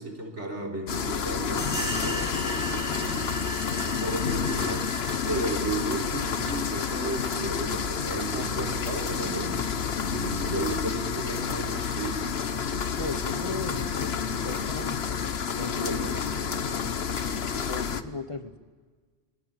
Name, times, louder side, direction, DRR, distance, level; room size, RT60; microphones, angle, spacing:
voice 1, 0.0-3.5 3.8-9.7 10.0-12.4 15.1-15.4 15.8-17.0, right 2 dB, 75° right, 1 dB, 4.0 m, -34 dB
sound 1, 0.9-18.0, left 6 dB, 60° left, 1.2 m, -30 dB
sound 2, 1.6-9.9, right 2 dB, 20° right, 3.5 m, -39 dB
sound 3, 7.5-16.4, right 3 dB, 60° right, 2.1 m, -47 dB
voice 2, 13.0-15.0 15.5-16.8 17.5-18.6, left 3 dB, 30° left, 9 dB, 1.1 m, -37 dB
26.5 x 20.5 x 8.9 m, 1.5 s
omnidirectional pair, 1.2 m